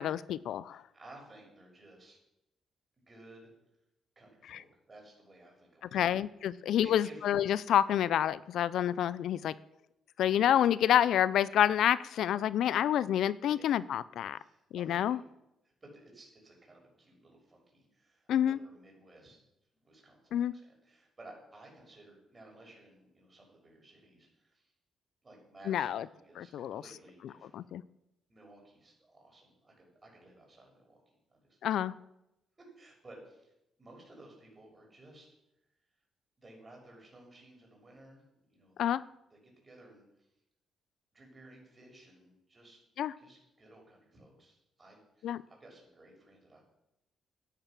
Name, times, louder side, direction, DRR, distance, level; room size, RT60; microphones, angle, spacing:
voice 1, 0.0-0.8 4.5-4.6 5.9-9.5 10.2-14.4 14.7-15.2 18.3-18.6 20.3-20.5 25.7-26.0 26.4-26.8 27.5-27.8 31.6-31.9 38.8-39.0 43.0-43.1 45.2-45.4, left 10 dB, 75° left, 19 dB, 0.4 m, -28 dB
voice 2, 0.7-2.2 3.1-3.5 4.2-6.1 6.5-7.2 13.5-13.8 14.3-15.3 15.8-19.4 19.7-24.7 25.2-27.7 28.3-31.6 32.6-33.5 33.8-35.3 36.4-38.2 38.5-39.0 39.3-40.3 41.1-42.8 43.2-46.6, right 1 dB, 25° right, -1 dB, 6.1 m, -56 dB
11.5 x 10.0 x 6.0 m, 0.88 s
cardioid pair, 90°, 0 cm